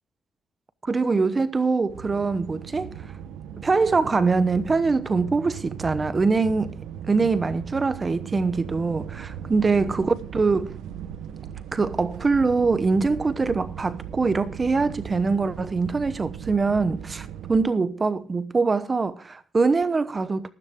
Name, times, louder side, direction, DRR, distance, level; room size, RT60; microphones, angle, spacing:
voice 1, 0.8-2.9 3.6-6.8 7.0-10.8 11.7-20.5, right 4 dB, 30° right, 0.9 m, -23 dB
sound 1, 1.9-17.7, right 9 dB, 85° right, 1.0 m, -38 dB
13.5 x 13.0 x 3.6 m
cardioid pair, 90°, 0 cm